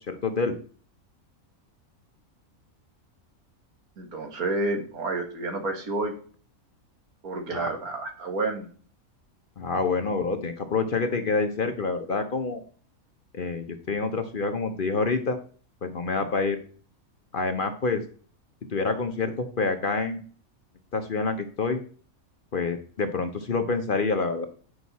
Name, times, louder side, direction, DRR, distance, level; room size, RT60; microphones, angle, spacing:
voice 1, 0.1-0.5 7.5-7.7 9.6-12.6 13.3-15.4 15.8-16.6 17.3-18.0 18.7-20.2 20.9-21.8 22.5-24.5, left 4 dB, 45° left, 7 dB, 0.8 m, -27 dB
voice 2, 4.0-6.1 7.2-8.7, right 2 dB, 90° right, 2 dB, 2.1 m, -29 dB
8.9 x 6.4 x 4.1 m, 0.43 s
omnidirectional pair, 1.5 m